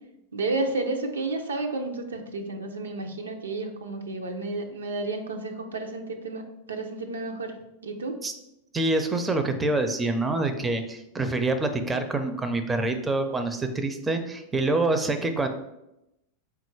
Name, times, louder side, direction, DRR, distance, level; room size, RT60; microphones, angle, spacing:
voice 1, 0.3-6.4 6.7-7.5 7.8-8.2, right 2 dB, 90° right, 4 dB, 0.5 m, -31 dB
voice 2, 8.7-15.5, right 2 dB, 15° right, 7 dB, 0.4 m, -26 dB
3.7 x 2.3 x 4.5 m, 0.88 s
hypercardioid pair, 100°, 0 cm